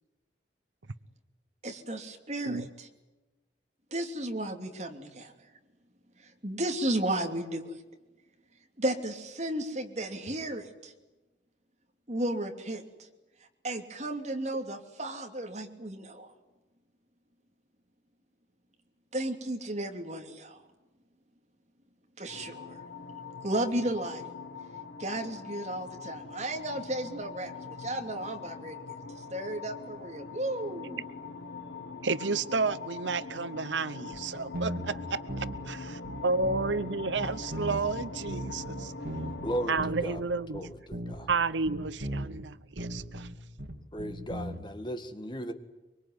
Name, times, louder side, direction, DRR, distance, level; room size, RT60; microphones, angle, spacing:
voice 1, 1.6-2.9 3.9-5.3 6.4-7.8 8.8-10.9 12.1-12.8 13.6-16.3 19.1-20.6 22.2-22.8 23.4-24.2 25.0-28.8 29.1-31.0, right 1 dB, 40° right, 4 dB, 3.0 m, -34 dB
sound 1, 22.3-39.7, left 4 dB, 75° left, 1.6 m, -42 dB
voice 2, 32.0-38.9 39.7-40.7 41.3-43.3, right 4 dB, 85° right, 15 dB, 0.8 m, -31 dB
sound 2, 34.1-34.2 34.5-35.7 36.0-36.8 37.2-40.2 40.5-41.4 41.6-42.4 42.8-44.6, right 1 dB, 60° right, 3.7 m, -37 dB
voice 3, 39.4-40.2 40.5-41.3 43.9-45.5, equal, 25° left, 8 dB, 1.8 m, -36 dB
24.0 x 24.0 x 9.5 m, 1.1 s
head